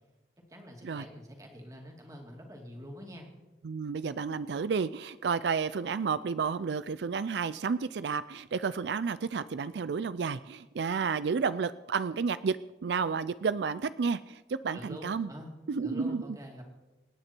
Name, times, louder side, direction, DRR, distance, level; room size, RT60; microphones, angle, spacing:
voice 1, 0.5-3.3 14.7-15.5 15.8-16.6, equal, 20° right, 1 dB, 2.5 m, -45 dB
voice 2, 3.6-12.6 12.8-15.3 15.7-16.2, right 5 dB, 80° right, 15 dB, 0.4 m, -31 dB
26.0 x 9.6 x 4.5 m, 1.1 s
head